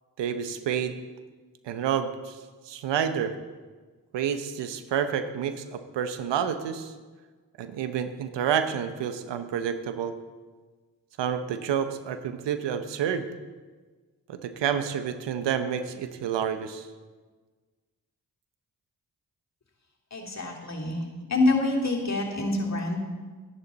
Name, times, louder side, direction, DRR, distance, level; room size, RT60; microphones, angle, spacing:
voice 1, 0.2-1.0 1.6-2.4 2.7-3.3 4.1-6.9 7.6-10.1 11.2-13.3 14.3-16.9, right 8 dB, 80° right, 10 dB, 0.9 m, -29 dB
voice 2, 20.1-21.0 21.3-23.0, left 2 dB, 40° left, -1 dB, 2.8 m, -26 dB
12.0 x 11.0 x 4.1 m, 1.4 s
supercardioid pair, 40°, 42 cm